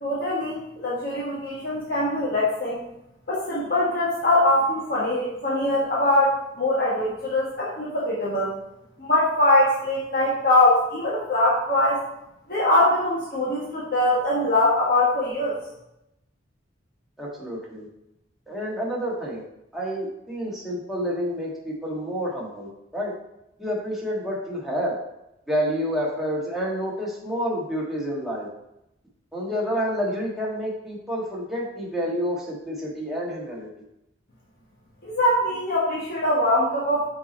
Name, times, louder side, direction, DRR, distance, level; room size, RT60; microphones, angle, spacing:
voice 1, 0.0-2.8 3.3-8.5 9.0-12.0 12.5-15.5 35.0-37.0, left 1 dB, 50° left, -6 dB, 1.4 m, -22 dB
voice 2, 17.2-17.9 18.5-19.4 19.7-23.1 23.6-24.9 25.5-28.5 29.3-33.7, equal, ahead, -5 dB, 1.6 m, -29 dB
5.9 x 4.2 x 4.3 m, 0.85 s
head